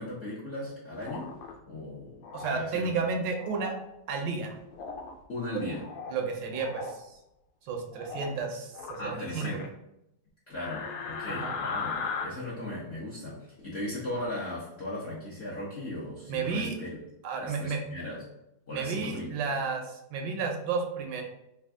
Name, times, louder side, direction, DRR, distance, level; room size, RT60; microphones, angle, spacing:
voice 1, 0.0-1.3 1.7-2.9 5.3-5.8 9.0-9.7 10.5-16.9 17.4-18.2 18.7-19.3, left 1 dB, 55° left, -8 dB, 0.7 m, -37 dB
sound 1, 0.9-1.5 2.2-2.6 3.3-3.8 4.7-5.1 5.6-6.2 6.5-6.9 7.9-8.4 8.7-9.7 10.6-12.2, left 5 dB, 80° left, 1.3 m, -37 dB
voice 2, 2.3-3.7 4.1-4.6 5.5-5.6 6.1-7.1 7.6-9.5 11.3-11.6 16.3-16.7 17.2-17.8 18.7-21.2, right 5 dB, 75° right, 2 dB, 1.2 m, -32 dB
3.4 x 2.3 x 3.4 m, 0.85 s
omnidirectional pair, 2.0 m